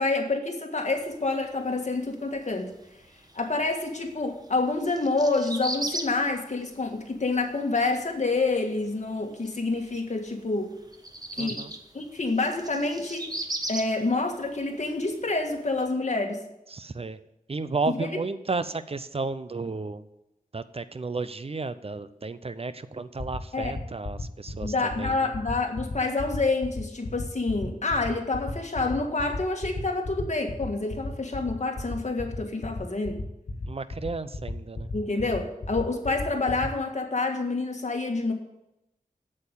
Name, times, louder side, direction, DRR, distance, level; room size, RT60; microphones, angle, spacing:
voice 1, 0.0-2.7 3.3-10.7 11.4-11.6 11.9-13.3 13.7-16.4 17.8-18.2 23.5-23.8 24.6-33.2 34.9-38.3, left 3 dB, 55° left, 3 dB, 1.8 m, -28 dB
sound 1, 0.9-15.9, right 1 dB, 25° right, 1.2 m, -39 dB
voice 2, 11.4-11.7 16.7-17.2 17.5-20.0 20.5-25.3 33.7-34.9, right 3 dB, 45° right, 13 dB, 0.6 m, -33 dB
sound 2, 22.9-36.7, left 3 dB, 90° left, 1.6 m, -33 dB
8.3 x 7.7 x 8.2 m, 0.88 s
wide cardioid pair, 85°, 14 cm